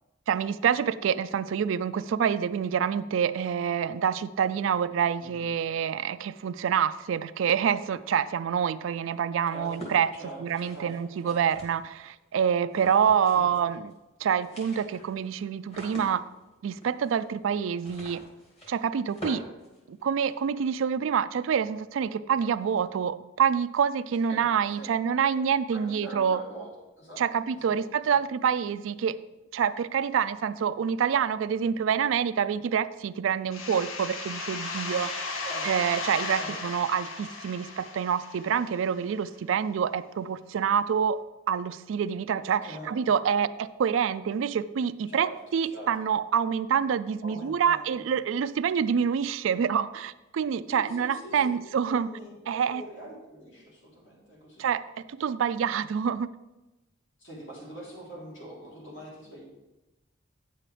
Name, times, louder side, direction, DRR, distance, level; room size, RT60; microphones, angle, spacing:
voice 1, 0.3-10.1 10.4-13.9 14.2-16.2 16.6-18.2 18.7-19.4 19.9-26.4 27.2-29.2 29.5-35.1 35.6-41.2 41.5-52.1 52.5-52.8 54.6-56.3, right 7 dB, 70° right, 15 dB, 0.3 m, -27 dB
voice 2, 5.2-5.5 9.5-9.8 10.1-10.4 10.7-11.0 11.2-11.4 13.3-13.6 24.2-24.4 24.8-24.9 25.2-25.4 25.7-26.7 27.0-27.2 27.5-28.2 35.4-35.7 36.4-36.5 42.6-43.0 45.1-45.3 45.6-45.9 47.2-48.1 50.7-51.6 51.8-54.6 57.2-59.4, right 1 dB, 65° left, -5 dB, 3.3 m, -43 dB
sound 1, 9.6-12.1 12.7-13.6 13.9-14.0 14.3-20.4, equal, 30° left, 2.3 m, -45 dB
sound 2, 33.5-39.0, left 3 dB, 85° left, 0.9 m, -35 dB
9.3 x 7.5 x 3.3 m, 1.0 s
head